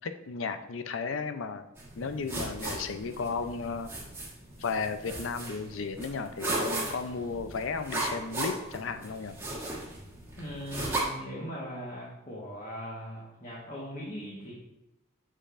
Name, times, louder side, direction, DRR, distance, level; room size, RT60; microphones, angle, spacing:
voice 1, 0.0-1.7 2.0-3.9 4.6-9.4, left 5 dB, 75° left, 9 dB, 0.5 m, -34 dB
sound 1, 1.8-11.0, right 2 dB, 10° right, 1.4 m, -37 dB
voice 2, 10.4-14.5, equal, 35° left, -6 dB, 1.3 m, -40 dB
7.4 x 6.7 x 2.5 m, 0.90 s
head